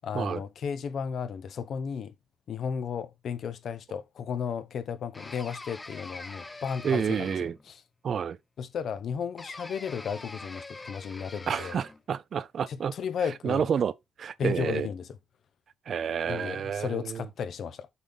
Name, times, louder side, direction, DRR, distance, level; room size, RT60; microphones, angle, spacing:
voice 1, 0.0-2.1 2.5-7.8 8.6-11.8 12.7-13.7 14.4-15.2 16.3-17.9, left 7 dB, 60° left, 0.8 m, -34 dB
sound 1, 5.1-7.7 9.4-12.0, left 2 dB, 20° left, 0.8 m, -44 dB
voice 2, 6.8-7.5 8.0-8.4 11.5-12.9 13.4-13.9 14.2-14.9 15.9-17.2, right 7 dB, 55° right, 0.6 m, -29 dB
8.2 x 3.6 x 4.0 m
cardioid pair, 90°, 0 cm